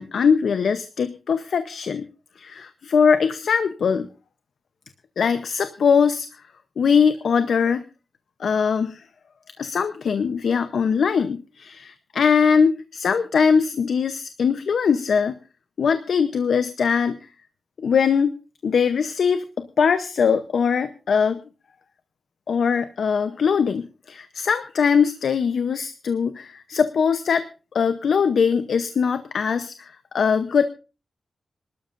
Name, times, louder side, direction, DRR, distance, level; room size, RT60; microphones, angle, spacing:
voice 1, 0.0-2.0 2.4-4.1 5.2-6.3 6.8-7.8 8.4-9.0 9.6-15.3 15.8-17.2 17.8-18.3 18.6-21.4 22.5-27.5 27.7-30.7, left 6 dB, 75° left, 11 dB, 0.7 m, -21 dB
26.5 x 12.5 x 2.5 m, 0.32 s
wide cardioid pair, 140°, 0 cm